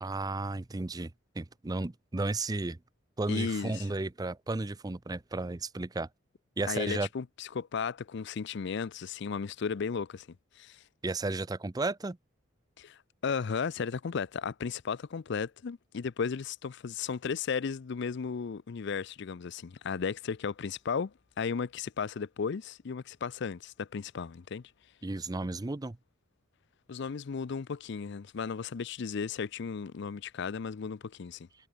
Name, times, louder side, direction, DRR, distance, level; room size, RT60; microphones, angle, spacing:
voice 1, 0.0-2.8 3.2-6.1 6.6-7.1 11.0-12.2 25.0-26.0, right 2 dB, 20° right, 0.5 m, -33 dB
voice 2, 3.3-3.9 6.7-10.3 10.6-10.8 12.8-24.6 26.9-31.5, left 6 dB, 60° left, 0.5 m, -35 dB
head